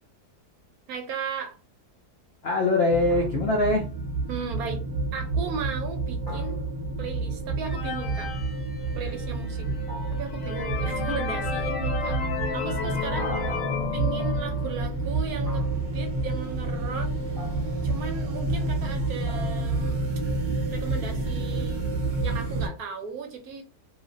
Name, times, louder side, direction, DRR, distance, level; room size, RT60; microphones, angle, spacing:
voice 1, 0.9-1.6 4.3-4.8 5.1-6.6 7.0-8.3 8.9-9.7 10.1-12.2 12.5-13.3 13.9-15.7 15.9-17.1 17.8-20.0 20.7-21.8 22.2-23.6, right 6 dB, 70° right, 5 dB, 1.0 m, -36 dB
voice 2, 2.4-3.8 13.1-14.3, left 2 dB, 75° left, 1 dB, 0.5 m, -25 dB
sound 1, 2.9-22.7, right 2 dB, 45° right, 0.9 m, -29 dB
sound 2, 3.1-3.7 6.3-7.1 9.9-10.5 13.1-13.9 15.4-16.0 17.4-17.9 19.3-19.9, equal, ahead, 1.1 m, -44 dB
sound 3, 7.6-9.3 9.8-9.9 10.3-14.8, left 6 dB, 60° left, 1.2 m, -33 dB
3.0 x 2.5 x 2.5 m, 0.35 s
omnidirectional pair, 1.8 m